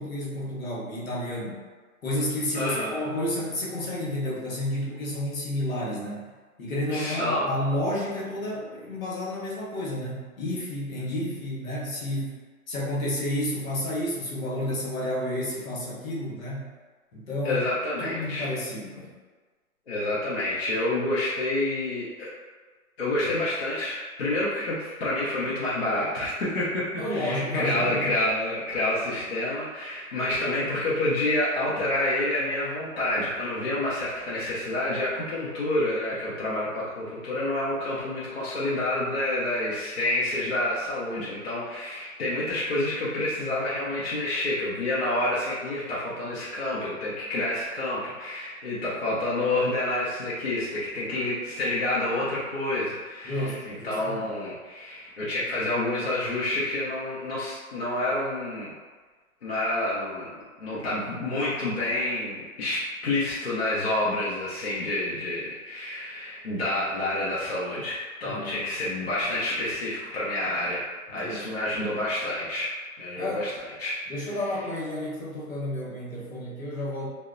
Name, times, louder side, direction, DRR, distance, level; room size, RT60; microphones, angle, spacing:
voice 1, 0.0-1.6 2.0-6.3 6.6-12.4 12.7-16.7 17.1-17.6 18.0-19.1 27.0-28.1 53.2-54.2 68.2-68.6 71.1-71.5 73.2-73.4 74.1-77.1, left 1 dB, 70° left, -5 dB, 1.0 m, -31 dB
voice 2, 2.5-2.9 6.9-7.5 17.4-18.5 19.9-22.3 23.0-58.7 59.4-72.7 73.0-73.5 73.8-74.0 74.2-74.6, left 1 dB, 45° left, -9 dB, 0.5 m, -28 dB
2.7 x 2.0 x 2.4 m, 1.4 s
hypercardioid pair, 170°, 43 cm